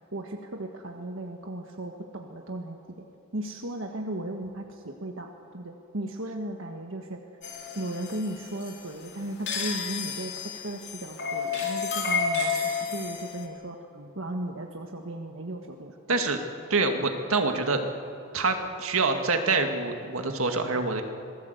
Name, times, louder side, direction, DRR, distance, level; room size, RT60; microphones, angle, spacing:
voice 1, 0.1-3.0 3.3-7.2 7.7-13.8 14.1-16.2, right 1 dB, 65° right, 2 dB, 1.5 m, -36 dB
sound 1, 7.4-13.5, left 5 dB, 55° left, 3.4 m, -31 dB
voice 2, 16.1-16.4 16.7-17.8 18.3-21.0, right 3 dB, 80° right, 5 dB, 2.1 m, -26 dB
26.5 x 18.5 x 8.1 m, 2.7 s
head